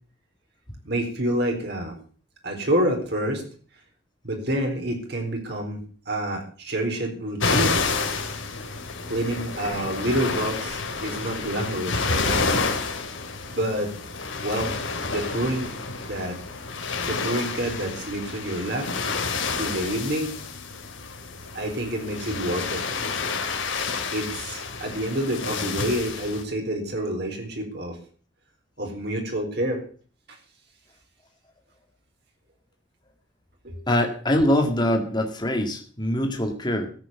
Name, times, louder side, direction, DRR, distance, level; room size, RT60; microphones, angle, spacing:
voice 1, 0.8-1.9 2.4-3.4 4.2-5.8 6.1-7.8 9.1-12.5 13.5-13.9 14.4-14.7 15.1-15.8 16.0-16.4 17.1-18.9 19.6-20.3 21.5-22.8 24.1-28.0 28.8-29.8 33.6-33.8, right 1 dB, 55° right, 2 dB, 4.2 m, -28 dB
sound 1, 7.4-26.4, left 4 dB, 75° left, 2.6 m, -29 dB
voice 2, 33.9-36.9, left 1 dB, 20° left, 3 dB, 2.0 m, -23 dB
14.0 x 8.5 x 8.2 m, 0.42 s
head